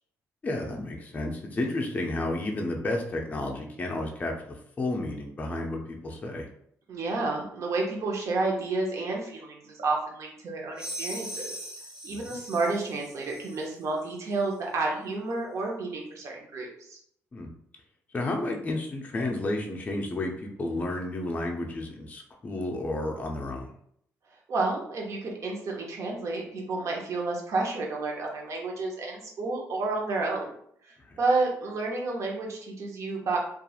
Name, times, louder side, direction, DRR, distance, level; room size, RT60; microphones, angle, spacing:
voice 1, 0.4-6.5 12.1-12.4 17.3-17.5 18.1-23.7 31.0-31.2, left 2 dB, 25° left, 1 dB, 0.4 m, -32 dB
voice 2, 6.9-11.5 12.0-17.0 24.5-30.5 31.2-33.4, right 3 dB, 60° right, -1 dB, 0.7 m, -30 dB
sound 1, 10.8-13.7, equal, 15° right, 0.8 m, -40 dB
2.8 x 2.4 x 2.3 m, 0.68 s
cardioid pair, 105°, 6 cm